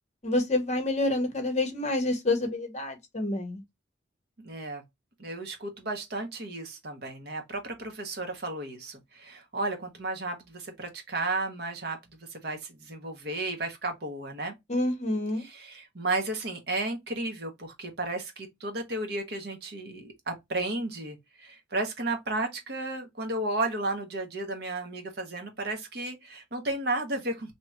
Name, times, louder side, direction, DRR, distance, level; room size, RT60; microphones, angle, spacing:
voice 1, 0.2-3.6 14.7-15.4, left 2 dB, 35° left, 0.9 m, -28 dB
voice 2, 4.4-4.8 5.2-12.0 12.3-14.5 15.4-27.5, right 2 dB, 55° right, 1.0 m, -33 dB
2.9 x 2.4 x 4.2 m
head